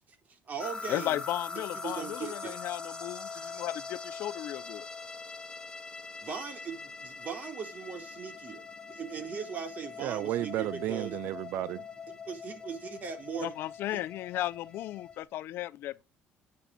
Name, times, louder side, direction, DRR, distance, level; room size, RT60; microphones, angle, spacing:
voice 1, 0.1-1.2 1.8-2.5 6.2-11.2 12.3-13.6 13.9-14.0, right 6 dB, 45° right, 3.9 m, -39 dB
sound 1, 0.6-15.2, left 4 dB, 15° left, 2.3 m, -43 dB
voice 2, 0.9-4.9 13.4-16.0, left 14 dB, 70° left, 0.7 m, -35 dB
voice 3, 10.0-11.8, right 14 dB, 70° right, 0.5 m, -33 dB
9.6 x 7.1 x 5.1 m
cardioid pair, 105°, 4 cm